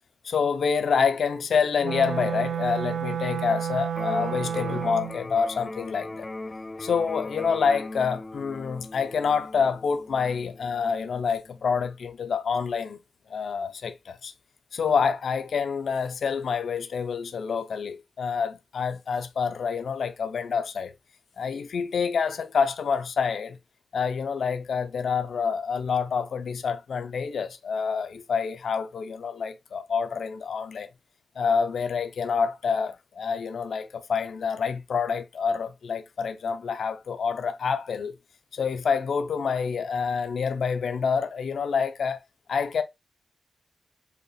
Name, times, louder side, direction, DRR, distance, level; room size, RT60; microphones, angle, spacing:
voice 1, 0.2-6.3 6.8-13.0 13.3-14.3 14.7-20.9 21.4-23.6 23.9-30.9 31.4-38.1 38.5-42.2 42.5-42.8, left 6 dB, 85° left, 0.4 m, -27 dB
Wind instrument woodwind instrument, 1.8-5.2, right 8 dB, 90° right, 0.5 m, -30 dB
Electric guitar, 3.9-11.9, left 2 dB, 25° left, 0.5 m, -40 dB
4.9 x 2.2 x 4.8 m
wide cardioid pair, 90°, 0 cm